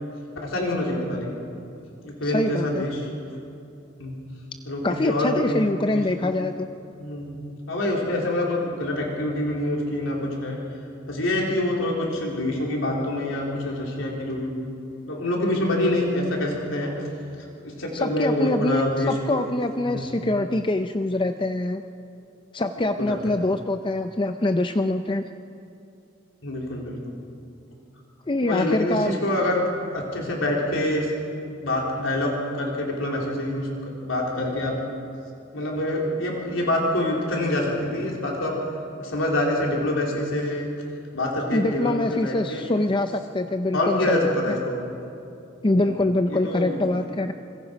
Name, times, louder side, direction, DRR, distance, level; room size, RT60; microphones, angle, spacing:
voice 1, 0.4-1.4 2.0-3.0 4.0-4.1 4.6-5.6 5.9-6.2 7.0-7.4 7.7-10.6 11.1-14.7 15.0-17.1 17.6-19.4 19.9-20.1 23.0-23.4 26.4-27.1 28.4-29.6 29.9-31.1 31.6-34.7 35.5-38.5 39.0-40.7 41.1-42.6 43.7-44.8 45.8-46.8, left 1 dB, 85° left, -2 dB, 3.9 m, -26 dB
voice 2, 2.2-2.8 4.8-6.7 17.9-21.8 22.5-25.2 28.3-29.2 41.5-44.6 45.6-47.3, left 2 dB, 25° left, 8 dB, 0.6 m, -24 dB
26.0 x 23.0 x 5.2 m, 2.7 s
head